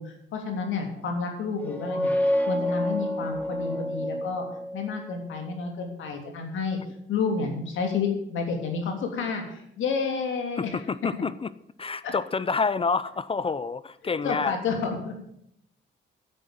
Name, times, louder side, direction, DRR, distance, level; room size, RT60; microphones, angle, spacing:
voice 1, 0.0-2.1 2.4-4.5 4.7-6.8 7.1-10.8 12.0-12.1 14.2-15.1, left 5 dB, 80° left, 3 dB, 3.2 m, -30 dB
sound 1, 1.6-5.2, left 1 dB, 10° left, 2.1 m, -28 dB
voice 2, 10.6-11.5 11.8-14.6, left 4 dB, 30° left, 16 dB, 0.5 m, -28 dB
9.8 x 8.3 x 9.0 m, 0.74 s
cardioid pair, 90°, 20 cm